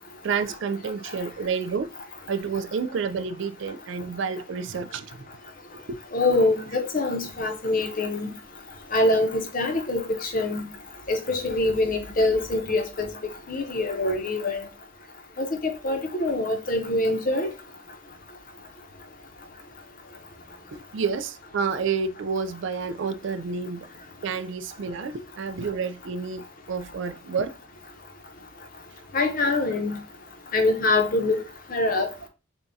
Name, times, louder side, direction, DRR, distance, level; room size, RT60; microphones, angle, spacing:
voice 1, 0.2-1.9 2.3-5.2 5.7-6.0 20.7-23.9 24.2-27.5, right 5 dB, 65° right, 0.4 m, -29 dB
voice 2, 6.1-8.3 8.9-10.6 11.1-13.1 13.5-14.7 15.4-17.5 29.1-30.0 30.5-31.4 31.7-32.1, left 2 dB, 45° left, 0.8 m, -24 dB
6.8 x 2.3 x 2.7 m
head